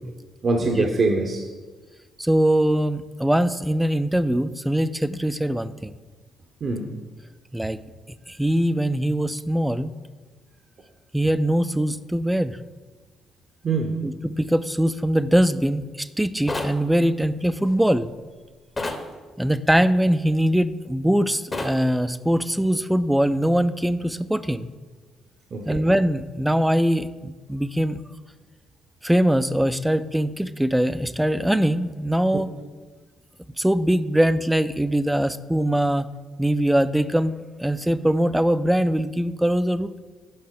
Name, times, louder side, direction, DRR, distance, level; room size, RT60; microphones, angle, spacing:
voice 1, 0.4-1.5 6.6-7.0 13.6-14.0 25.5-25.9, right 3 dB, 50° right, 3 dB, 0.7 m, -23 dB
voice 2, 2.2-5.9 7.5-7.8 8.3-10.0 11.1-12.6 14.0-18.1 19.4-24.7 25.7-28.0 29.0-32.5 33.6-36.1 36.4-40.0, right 1 dB, 5° right, 13 dB, 0.3 m, -22 dB
sound 1, 16.5-16.8 18.8-19.1 21.5-21.8, left 2 dB, 30° left, 0.9 m, -28 dB
6.6 x 5.5 x 3.7 m, 1.4 s
hypercardioid pair, 55°, 0 cm